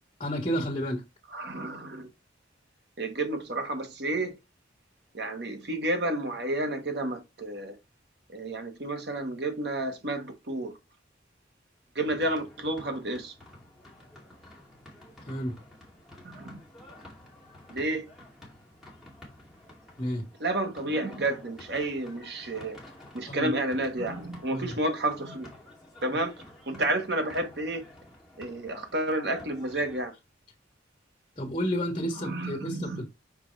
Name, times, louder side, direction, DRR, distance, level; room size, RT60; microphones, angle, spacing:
voice 1, 0.2-1.0 15.3-15.5 20.0-20.2 23.3-23.5 24.5-24.7 31.4-33.1, equal, 30° left, 1.6 m, -31 dB
voice 2, 1.3-2.1 3.0-4.3 5.1-7.7 8.3-10.7 11.9-13.3 16.2-16.6 17.7-18.1 20.4-22.8 23.1-25.5 26.0-26.3 26.7-27.8 28.4-30.1 32.2-33.0, right 1 dB, 60° right, 1.4 m, -31 dB
sound 1, 12.0-30.0, left 1 dB, ahead, 2.5 m, -51 dB
6.0 x 4.7 x 3.3 m
head